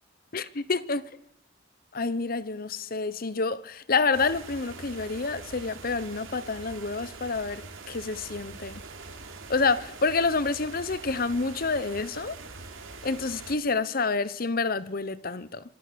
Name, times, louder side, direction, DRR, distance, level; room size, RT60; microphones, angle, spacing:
voice 1, 0.3-1.0 1.9-7.6 7.9-8.8 9.5-12.4 13.0-15.6, left 4 dB, 45° left, 0.9 m, -28 dB
sound 1, 4.1-13.6, right 3 dB, 90° right, 3.7 m, -43 dB
26.0 x 20.5 x 6.9 m
head